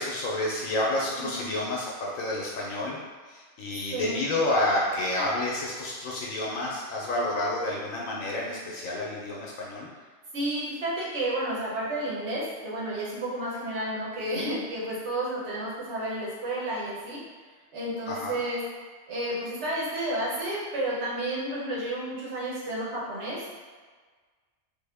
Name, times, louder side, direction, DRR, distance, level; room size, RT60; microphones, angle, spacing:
voice 1, 0.0-3.0 3.3-9.9 18.1-18.3, left 1 dB, 75° left, -4 dB, 1.0 m, -29 dB
voice 2, 1.2-1.5 3.9-4.2 10.3-17.2 17.7-18.6 19.1-23.4, right 1 dB, 55° right, -7 dB, 1.2 m, -31 dB
3.6 x 2.1 x 3.4 m, 1.5 s
omnidirectional pair, 1.4 m